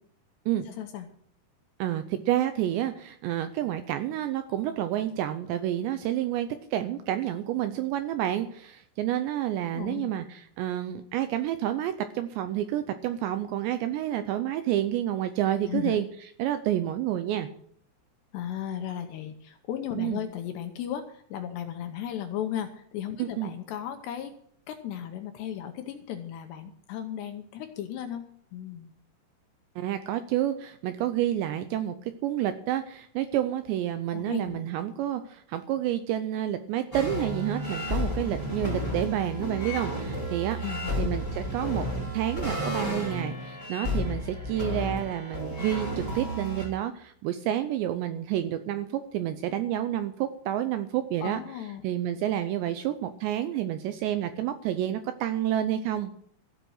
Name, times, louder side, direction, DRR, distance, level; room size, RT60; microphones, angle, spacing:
voice 1, 0.7-1.1 9.6-10.1 15.7-16.0 18.3-24.3 24.7-28.9 34.1-34.6 40.6-41.1 51.2-51.8, left 10 dB, 75° left, 7 dB, 2.7 m, -35 dB
voice 2, 1.8-16.1 16.4-17.5 20.0-20.2 23.2-23.5 29.8-40.6 41.0-41.9 42.1-51.4 51.8-56.1, right 12 dB, 80° right, 9 dB, 2.6 m, -29 dB
sound 1, 36.9-46.7, left 1 dB, 5° right, 3.7 m, -32 dB
14.5 x 8.1 x 6.4 m, 0.62 s
omnidirectional pair, 5.7 m